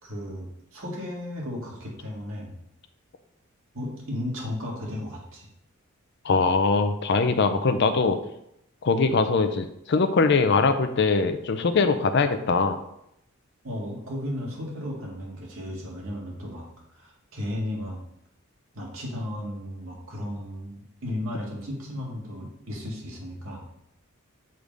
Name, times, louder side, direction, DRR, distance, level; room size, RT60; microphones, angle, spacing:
voice 1, 0.0-2.6 3.7-5.5 13.6-18.0 18.7-23.6, left 1 dB, 65° right, -2 dB, 1.9 m, -34 dB
voice 2, 6.2-8.2 8.8-12.8, left 4 dB, 55° left, 8 dB, 0.5 m, -22 dB
6.5 x 3.4 x 5.2 m, 0.77 s
head